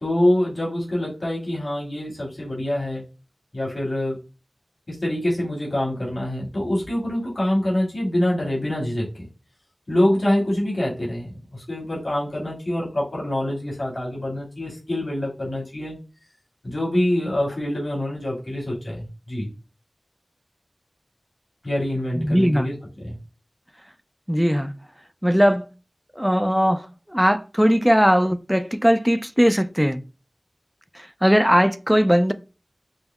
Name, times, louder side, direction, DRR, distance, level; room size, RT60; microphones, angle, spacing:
voice 1, 0.0-3.0 3.5-4.2 4.9-9.3 9.9-16.0 16.6-19.5 21.6-23.2, left 1 dB, 55° left, 2.1 m, -25 dB
voice 2, 22.2-22.7 24.3-24.7 25.2-25.7 26.2-30.0 30.9-32.3, equal, 5° right, 0.3 m, -19 dB
5.3 x 2.0 x 3.4 m
wide cardioid pair, 50°, 0 cm